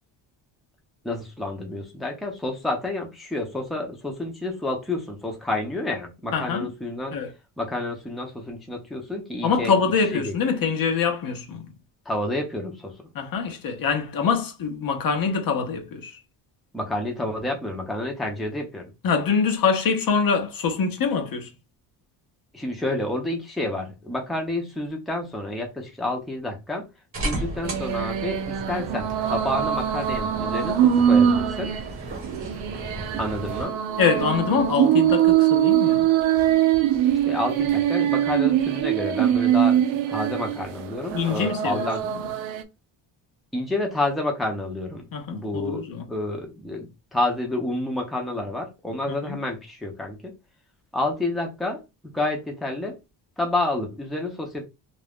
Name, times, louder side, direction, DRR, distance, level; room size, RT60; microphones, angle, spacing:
voice 1, 1.0-7.2 7.6-9.7 10.1-10.3 12.1-12.9 16.7-18.9 22.5-26.9 27.2-31.7 33.2-33.8 37.2-39.8 40.1-42.0 43.5-50.3 50.9-51.8 52.1-53.0 53.4-54.7, left 2 dB, ahead, 0.6 m, -29 dB
voice 2, 6.3-6.7 7.1-7.3 9.4-11.8 13.1-16.2 19.0-21.5 34.0-36.1 41.1-41.9 45.1-46.0 49.1-49.4, left 5 dB, 50° left, 0.8 m, -24 dB
sound 1, 27.1-33.7, right 2 dB, 30° right, 1.2 m, -35 dB
sound 2, 27.6-42.6, right 10 dB, 85° right, 0.6 m, -22 dB
2.5 x 2.1 x 3.4 m
cardioid pair, 100°, 44 cm